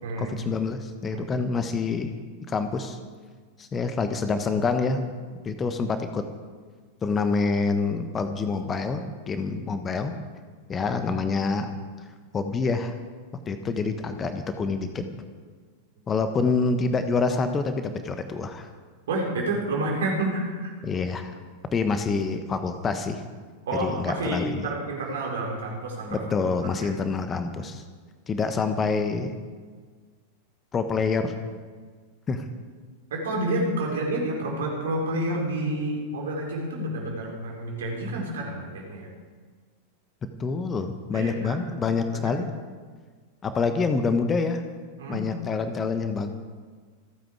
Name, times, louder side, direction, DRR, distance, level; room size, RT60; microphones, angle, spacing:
voice 1, 0.2-2.1 2.5-3.0 3.6-5.1 5.4-6.2 7.0-10.1 10.7-11.7 12.3-12.9 13.5-15.0 16.1-18.7 20.8-21.3 21.7-23.2 23.8-24.6 26.1-27.8 28.3-29.3 30.7-31.4 32.3-32.5 40.4-42.5 43.4-44.6 45.1-46.3, left 4 dB, 20° left, 8 dB, 1.2 m, -26 dB
voice 2, 19.1-20.7 23.7-26.2 26.6-26.7 33.1-39.1 41.1-41.6 42.1-42.3 45.0-45.3, right 1 dB, 60° right, -1 dB, 4.8 m, -29 dB
27.0 x 9.2 x 4.9 m, 1.5 s
figure-of-eight pair, 90°, 0 cm